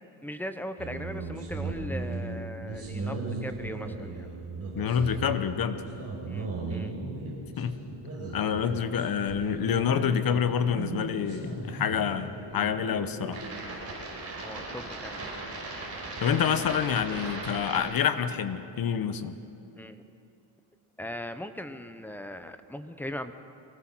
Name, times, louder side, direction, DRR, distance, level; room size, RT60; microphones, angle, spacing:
voice 1, 0.2-4.3 6.3-7.0 14.4-15.2 19.8-20.0 21.0-23.3, left 1 dB, 5° left, 9 dB, 0.8 m, -39 dB
sound 1, 0.8-17.8, right 3 dB, 30° right, 5.7 m, -37 dB
voice 2, 4.7-5.8 7.6-7.8 8.3-13.4 16.2-19.4, left 8 dB, 45° left, 11 dB, 1.1 m, -27 dB
24.0 x 18.0 x 6.2 m, 2.7 s
cardioid pair, 135°, 48 cm